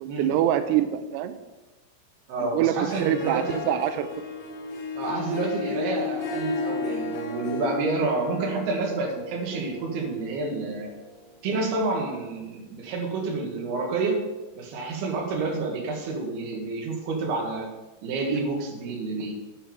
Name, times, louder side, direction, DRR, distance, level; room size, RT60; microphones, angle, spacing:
voice 1, 0.0-1.4 2.4-4.1, right 11 dB, 90° right, 9 dB, 2.4 m, -25 dB
voice 2, 2.3-3.7 5.0-10.9 11.4-14.2 14.6-17.7 18.0-19.3, right 3 dB, 60° right, 0 dB, 3.7 m, -29 dB
Harp, 2.7-11.3, left 3 dB, 85° left, 1.5 m, -34 dB
10.0 x 9.2 x 5.0 m, 1.1 s
omnidirectional pair, 5.4 m